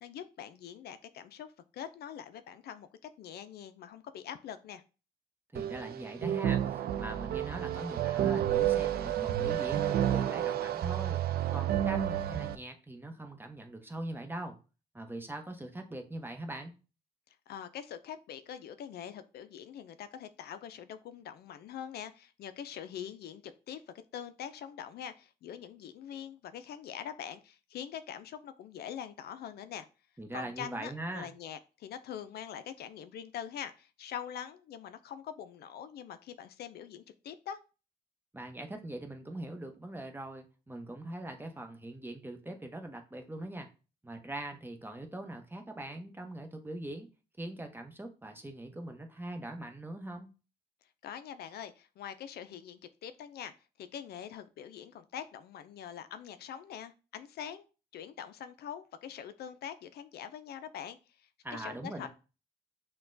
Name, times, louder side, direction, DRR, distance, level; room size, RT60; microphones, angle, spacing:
voice 1, 0.0-4.8 17.3-23.8 24.1-29.9 30.3-37.6 51.0-57.7 57.9-62.1, left 9 dB, 70° left, 11 dB, 0.4 m, -44 dB
voice 2, 5.5-11.2 11.5-14.6 14.9-16.7 30.2-31.3 38.3-43.7 44.0-47.1 47.4-50.3 61.4-62.1, right 1 dB, 10° right, 5 dB, 0.8 m, -41 dB
sound 1, 5.5-12.5, right 11 dB, 65° right, 0.4 m, -30 dB
5.8 x 2.2 x 2.6 m, 0.33 s
cardioid pair, 70°, 17 cm